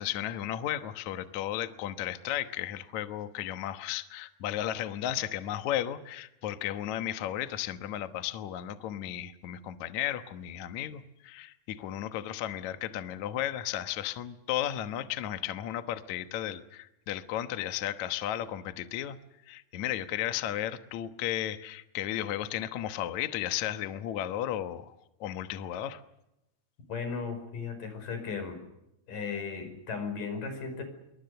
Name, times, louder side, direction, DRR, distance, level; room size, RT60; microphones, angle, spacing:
voice 1, 0.0-19.2 19.5-24.9 25.2-26.0, left 12 dB, 70° left, 10 dB, 1.8 m, -34 dB
voice 2, 26.9-28.6 29.1-30.8, left 5 dB, 50° left, 7 dB, 6.9 m, -36 dB
27.0 x 24.0 x 6.8 m, 0.87 s
omnidirectional pair, 4.8 m